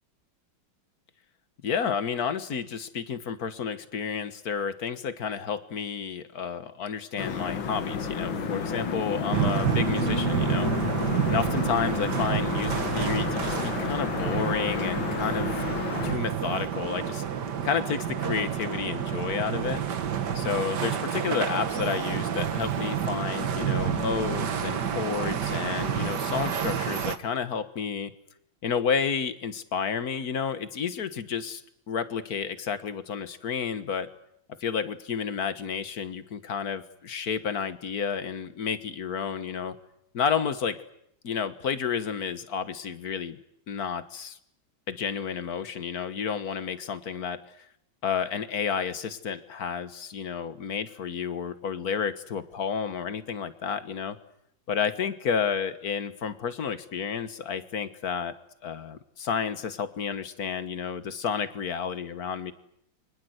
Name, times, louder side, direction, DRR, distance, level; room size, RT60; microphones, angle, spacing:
voice 1, 1.6-10.7 11.3-15.5 16.0-17.2 17.6-19.8 20.3-28.1 28.6-31.6 31.9-34.1 34.6-39.8 40.1-40.8 41.2-43.4 43.7-44.4 44.9-47.4 48.0-54.2 54.7-58.4 58.6-62.5, left 6 dB, 50° left, 12 dB, 1.7 m, -31 dB
sound 1, 7.2-16.1, left 5 dB, 70° left, 2.5 m, -31 dB
sound 2, 9.3-27.2, right 8 dB, 55° right, 1.9 m, -29 dB
29.5 x 24.5 x 8.0 m, 0.76 s
omnidirectional pair, 2.3 m